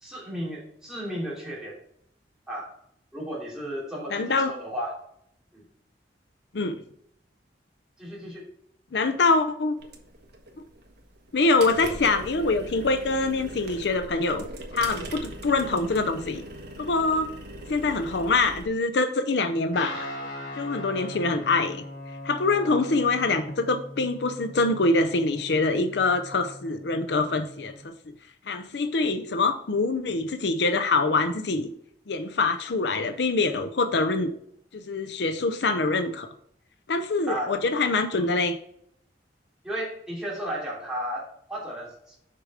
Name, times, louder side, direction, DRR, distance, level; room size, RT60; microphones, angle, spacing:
voice 1, 0.0-1.8 2.5-2.7 3.1-5.0 5.5-5.6 8.0-8.4 20.9-21.1 37.3-37.5 38.1-38.3 39.6-42.2, equal, 5° right, -6 dB, 3.0 m, -34 dB
voice 2, 4.1-4.5 6.5-6.8 8.9-9.8 11.3-14.4 14.7-16.4 16.8-17.3 17.7-20.1 20.6-21.8 22.2-27.9 28.5-31.7 32.1-34.3 34.7-36.3 36.9-38.6, left 3 dB, 70° left, 9 dB, 0.6 m, -24 dB
sound 1, 9.8-18.6, right 1 dB, 60° right, 1.2 m, -40 dB
Guitar, 19.7-27.8, left 1 dB, 50° left, 3.3 m, -40 dB
6.7 x 5.1 x 4.9 m, 0.70 s
head